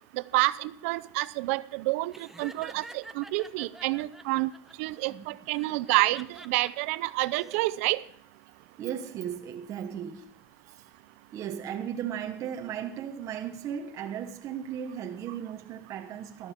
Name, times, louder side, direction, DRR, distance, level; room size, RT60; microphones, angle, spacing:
voice 1, 0.3-2.1 2.4-4.5 4.8-8.0, right 20 dB, 85° right, 0.6 m, -28 dB
Laughter, 2.1-4.7 5.5-6.7 7.2-7.6, right 1 dB, 5° right, 0.8 m, -48 dB
voice 2, 8.8-10.3 10.7-10.9 11.3-16.5, right 9 dB, 50° right, 1.2 m, -36 dB
13.0 x 12.5 x 4.4 m
supercardioid pair, 125°, 7 cm